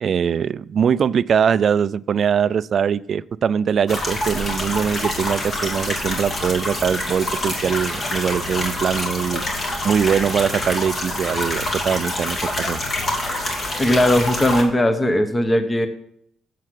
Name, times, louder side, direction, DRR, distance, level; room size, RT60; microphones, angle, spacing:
voice 1, 0.0-9.4 9.8-12.8, right 7 dB, 55° right, 0.3 m, -22 dB
sound 1, 3.9-14.6, left 1 dB, 40° left, 2.6 m, -26 dB
voice 2, 13.8-15.9, left 1 dB, 20° left, 1.0 m, -18 dB
7.7 x 7.5 x 7.6 m
cardioid pair, 90°, 0 cm